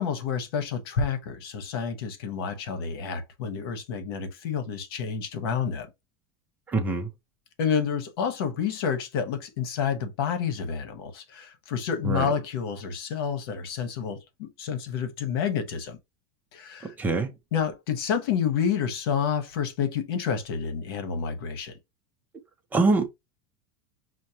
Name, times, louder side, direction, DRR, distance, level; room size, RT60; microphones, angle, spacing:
voice 1, 0.0-5.9 7.6-16.0 16.5-16.9 17.5-21.7, left 7 dB, 75° left, 1.2 m, -29 dB
voice 2, 6.7-7.1 12.0-12.3 16.8-17.3 22.7-23.1, right 3 dB, 15° right, 0.6 m, -24 dB
6.2 x 2.2 x 2.9 m
supercardioid pair, 165°, 13 cm